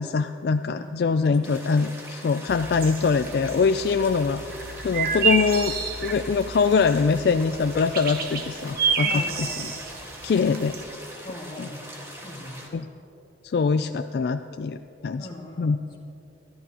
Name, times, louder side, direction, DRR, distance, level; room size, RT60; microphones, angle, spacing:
voice 1, 0.0-4.4 4.8-5.7 6.0-9.5 10.2-10.7 11.6-11.7 12.7-12.9 13.4-15.3 15.6-15.8, left 5 dB, 60° left, 9 dB, 0.3 m, -23 dB
voice 2, 0.7-1.5 9.0-9.8 11.2-12.0 12.2-12.6 15.2-15.8, left 1 dB, 30° left, -1 dB, 1.9 m, -40 dB
sound 1, 1.4-12.7, equal, 15° right, 1.7 m, -42 dB
sound 2, 2.5-10.8, right 5 dB, 55° right, 1.0 m, -30 dB
23.5 x 13.0 x 2.9 m, 2.7 s
head